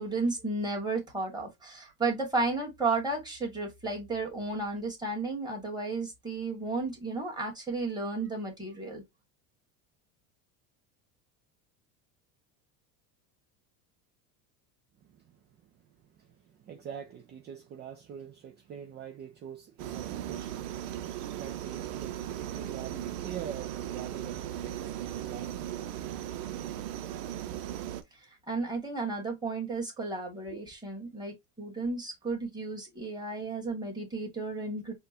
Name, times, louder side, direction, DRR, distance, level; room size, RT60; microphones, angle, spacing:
voice 1, 0.0-9.0 28.5-34.9, right 3 dB, 10° right, 1.8 m, -33 dB
voice 2, 15.0-25.8 30.5-30.6, right 8 dB, 25° right, 0.3 m, -45 dB
sound 1, 19.8-28.0, right 11 dB, 75° right, 0.8 m, -37 dB
4.4 x 2.4 x 2.5 m
supercardioid pair, 120°, 48 cm